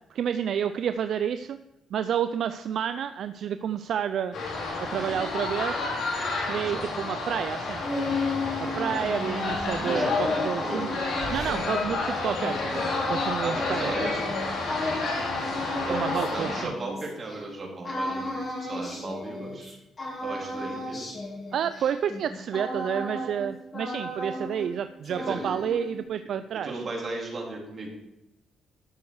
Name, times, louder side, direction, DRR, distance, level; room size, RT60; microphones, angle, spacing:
voice 1, 0.1-1.6 1.9-4.3 4.8-5.9 6.5-8.2 8.4-10.9 11.3-14.1 15.9-16.7 21.5-26.8, right 8 dB, 65° right, 10 dB, 0.4 m, -30 dB
sound 1, 4.3-16.6, left 3 dB, 70° left, 3.6 m, -30 dB
sound 2, 7.5-17.4 17.8-19.7 20.0-23.5 23.7-24.8 25.0-26.0, left 2 dB, 35° left, 3.5 m, -33 dB
voice 2, 9.8-11.0 13.4-14.2 15.9-18.3 18.6-19.8 20.2-21.0 25.2-25.4 26.6-27.9, right 2 dB, 40° right, -2 dB, 3.6 m, -34 dB
12.5 x 6.9 x 4.8 m, 0.92 s
cardioid pair, 90°, 0 cm